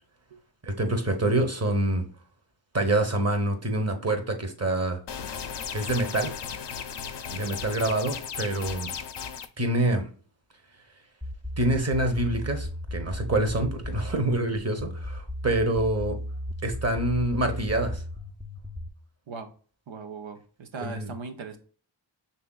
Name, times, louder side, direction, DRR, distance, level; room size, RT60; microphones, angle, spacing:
voice 1, 0.6-2.1 2.7-5.0 5.7-6.3 7.3-8.9 9.6-10.1 11.6-16.2 16.6-18.0 20.8-21.1, right 1 dB, 35° right, 1.0 m, -26 dB
sound 1, 5.1-9.5, left 7 dB, 65° left, 0.6 m, -36 dB
sound 2, 11.2-18.9, equal, 10° right, 0.4 m, -35 dB
voice 2, 19.9-21.6, right 4 dB, 90° right, 0.7 m, -38 dB
5.6 x 3.4 x 2.3 m
wide cardioid pair, 70°, 45 cm